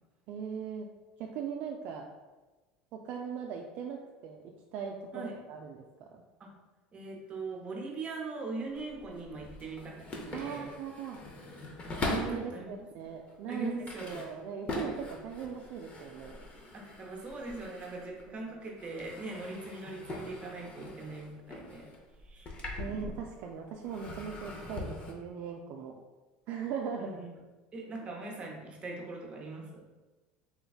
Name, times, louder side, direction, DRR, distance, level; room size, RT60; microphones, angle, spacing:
voice 1, 0.3-0.9 1.2-2.0 3.0-4.4 4.7-6.2 10.3-11.2 12.1-13.7 14.0-16.4 18.3-18.4 22.8-25.9 26.5-27.2, right 7 dB, 60° right, 1 dB, 0.3 m, -39 dB
voice 2, 6.9-10.0 10.3-10.7 12.3-12.7 13.5-14.2 16.7-21.9 22.2-22.5 27.0-27.3 27.7-29.8, right 3 dB, 30° right, -1 dB, 0.8 m, -41 dB
sound 1, 8.6-12.5 13.1-18.4 18.6-23.5 23.8-25.1, left 2 dB, 30° left, 0.6 m, -42 dB
3.4 x 3.1 x 2.3 m, 1.2 s
supercardioid pair, 105°, 4 cm